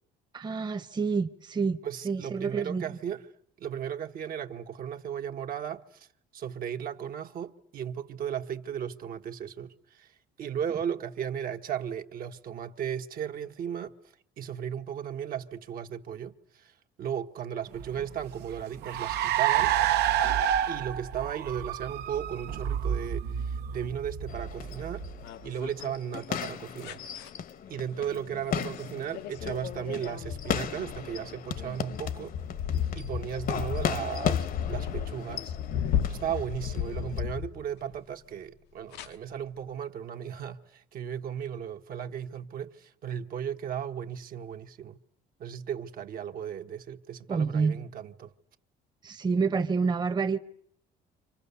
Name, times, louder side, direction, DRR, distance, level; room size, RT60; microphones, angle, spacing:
voice 1, 0.3-1.8 2.0-3.0 36.0-36.1 47.3-47.7 49.0-50.4, right 5 dB, 25° right, 1.0 m, -28 dB
voice 2, 1.8-3.2 3.6-6.1 6.3-10.1 10.4-13.9 14.4-19.7 20.7-25.0 25.4-27.0 27.7-32.3 32.9-35.5 36.1-45.0 45.4-48.3, right 9 dB, 60° right, 1.3 m, -36 dB
Car, 17.8-25.6, right 10 dB, 80° right, 1.0 m, -29 dB
sound 1, 24.3-37.2, left 8 dB, 55° left, 1.1 m, -37 dB
sound 2, 25.0-25.9 26.8-27.3 28.6-28.8 29.1-38.0 38.9-39.1, left 9 dB, 85° left, 1.1 m, -34 dB
29.5 x 26.5 x 6.9 m
cardioid pair, 110°, 17 cm